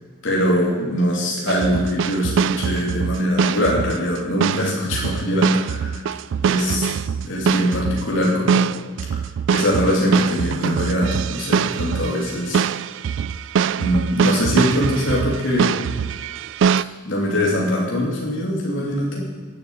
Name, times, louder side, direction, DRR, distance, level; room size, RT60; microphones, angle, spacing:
voice 1, 0.2-6.0 6.4-6.9 7.2-8.8 9.5-12.6 13.8-15.8 17.0-19.2, left 1 dB, 70° left, -3 dB, 2.7 m, -22 dB
sound 1, 1.5-16.8, right 7 dB, 65° right, 0.3 m, -23 dB
11.5 x 8.5 x 7.9 m, 1.5 s
head